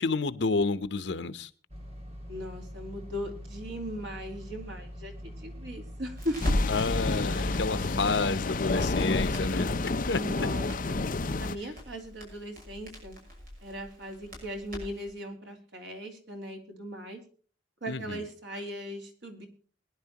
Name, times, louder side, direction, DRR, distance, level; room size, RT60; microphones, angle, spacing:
voice 1, 0.0-1.5 6.7-9.7 10.1-10.2 17.9-18.2, left 3 dB, 80° left, 0.9 m, -29 dB
sound 1, 1.7-10.5, equal, 35° right, 2.6 m, -43 dB
voice 2, 2.3-6.5 10.1-11.0 11.4-13.2 13.6-17.2 17.8-19.5, equal, 90° right, 3.4 m, -38 dB
Crackle, 6.2-15.1, equal, 55° right, 6.2 m, -39 dB
sound 2, 6.4-11.5, left 3 dB, 50° left, 0.7 m, -30 dB
22.0 x 11.0 x 3.0 m
head